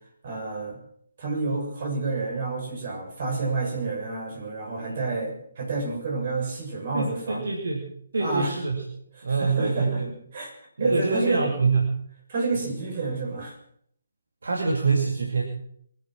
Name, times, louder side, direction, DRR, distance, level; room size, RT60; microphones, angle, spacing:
voice 1, 0.2-0.8 1.2-7.4 8.2-8.6 9.3-10.0 10.3-10.5 10.8-11.5 12.3-13.5, right 3 dB, 45° right, 0 dB, 6.7 m, -29 dB
voice 2, 6.9-7.9 8.1-8.8 9.2-10.1 10.8-12.0 12.5-12.6 14.4-15.4, right 4 dB, 65° right, 1 dB, 2.6 m, -25 dB
23.5 x 9.1 x 6.0 m, 0.67 s
figure-of-eight pair, 140°, 0 cm